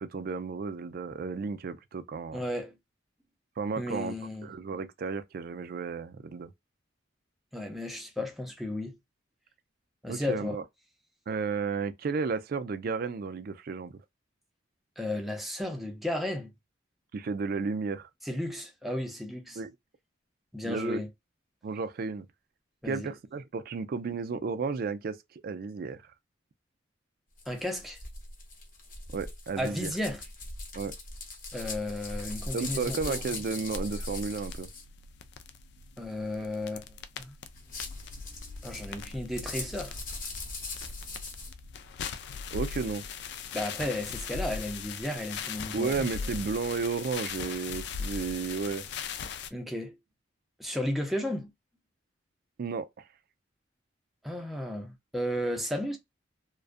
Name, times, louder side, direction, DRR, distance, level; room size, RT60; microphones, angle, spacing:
voice 1, 0.0-2.4 3.6-4.2 4.4-6.5 10.1-10.6 11.3-14.0 17.1-18.1 19.6-19.7 20.6-21.0 21.6-22.3 22.8-26.0 29.1-29.9 30.8-30.9 32.5-34.7 42.5-43.0 45.7-48.8 52.6-53.0, right 4 dB, 50° right, 0.4 m, -33 dB
voice 2, 2.3-2.8 3.8-4.5 7.5-9.0 10.0-10.6 15.0-16.5 18.2-19.6 20.5-21.1 22.8-23.1 27.5-28.0 29.6-30.2 31.5-33.2 36.0-37.4 38.6-40.0 43.5-46.1 49.5-50.0 50.6-51.5 54.2-56.0, left 1 dB, ahead, 0.6 m, -34 dB
sound 1, 27.4-34.8 37.5-41.5, left 2 dB, 45° left, 0.8 m, -40 dB
sound 2, 33.7-49.5, left 6 dB, 60° left, 0.3 m, -40 dB
2.4 x 2.2 x 2.4 m
head